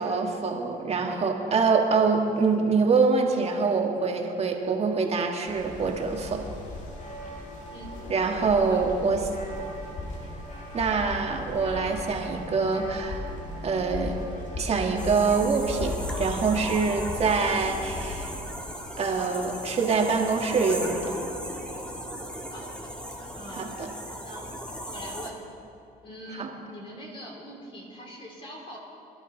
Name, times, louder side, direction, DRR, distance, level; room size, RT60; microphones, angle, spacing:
voice 1, 0.0-6.4 8.1-9.3 10.7-13.3 13.6-14.2 14.6-18.3 19.0-21.1 23.5-23.9 26.3-26.5, right 4 dB, 40° right, 2 dB, 1.8 m, -25 dB
sound 1, 5.5-18.4, left 2 dB, 45° left, 2.5 m, -37 dB
sound 2, 15.0-25.3, equal, 5° left, 2.0 m, -37 dB
voice 2, 22.5-22.9 23.4-23.7 24.2-24.5 24.9-25.3 26.0-28.8, equal, 30° left, -2 dB, 3.2 m, -43 dB
21.5 x 11.5 x 4.0 m, 2.8 s
cardioid pair, 110°, 17 cm